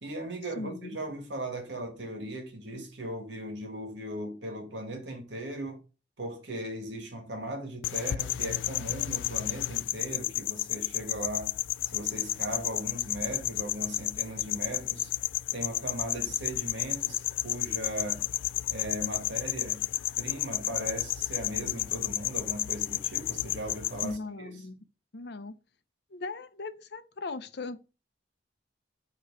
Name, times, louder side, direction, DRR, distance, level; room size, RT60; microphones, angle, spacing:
voice 1, 0.0-5.8 6.2-11.6 11.9-15.1 15.5-18.2 18.7-19.8 20.2-24.5, right 1 dB, 70° right, 1.9 m, -38 dB
voice 2, 0.6-1.0 24.0-24.8 25.1-25.5 26.1-27.8, left 3 dB, 65° left, 0.7 m, -38 dB
sound 1, 7.8-24.2, left 16 dB, 90° left, 0.3 m, -32 dB
8.2 x 3.1 x 4.8 m
head